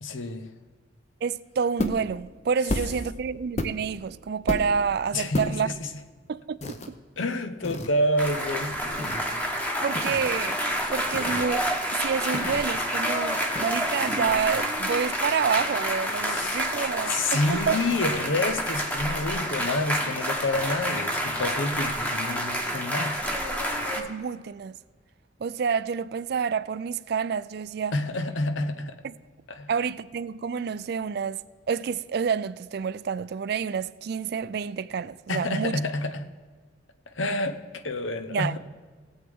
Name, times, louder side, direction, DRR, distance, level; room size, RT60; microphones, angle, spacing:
voice 1, 0.0-0.5 5.1-5.9 7.2-9.0 16.3-16.7 17.1-23.2 27.9-29.0 29.5-29.7 35.3-36.3 37.1-38.6, left 2 dB, 85° left, 0.9 m, -28 dB
voice 2, 1.2-5.7 6.3-6.8 9.8-10.6 10.9-17.8 24.0-24.8 25.4-28.0 29.0-29.1 29.7-31.4 31.7-35.8 38.3-38.6, right 6 dB, 55° right, 0.3 m, -28 dB
sound 1, 1.8-2.1 2.7-3.0 3.6-4.0 4.5-4.8 5.3-5.5 6.6-6.9 7.6-7.9 9.0-9.2 9.9-10.3 11.1-11.5 12.3-12.8 13.5-13.7, left 1 dB, 35° left, 0.8 m, -31 dB
sound 2, 8.2-24.0, equal, 10° left, 1.1 m, -28 dB
17.5 x 8.1 x 3.6 m
head